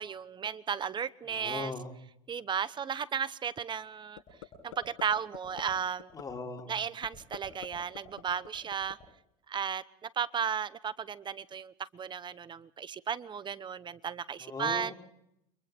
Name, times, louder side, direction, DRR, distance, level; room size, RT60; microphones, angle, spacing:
voice 1, 0.0-1.7 2.3-4.2 4.6-6.1 6.7-9.0 9.5-14.9, right 7 dB, 25° right, 1.0 m, -34 dB
voice 2, 1.3-1.9 6.1-6.7 14.4-14.9, left 4 dB, 20° left, 4.0 m, -38 dB
sound 1, 4.2-4.5 4.7-5.0 5.3-5.6 6.0-6.2 6.6-6.7 7.0-7.7 7.9-8.9, left 12 dB, 85° left, 7.7 m, -45 dB
30.0 x 25.0 x 3.6 m
supercardioid pair, 105°, 17 cm